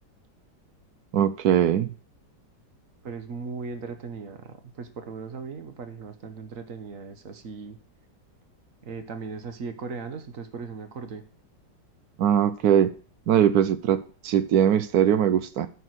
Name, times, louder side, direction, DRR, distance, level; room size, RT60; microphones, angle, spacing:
voice 1, 1.1-1.9 12.2-12.9 13.3-15.7, right 9 dB, 70° right, 1.0 m, -21 dB
voice 2, 3.0-7.8 8.8-11.3, right 4 dB, 50° right, 1.4 m, -38 dB
9.4 x 5.9 x 6.2 m
omnidirectional pair, 1.9 m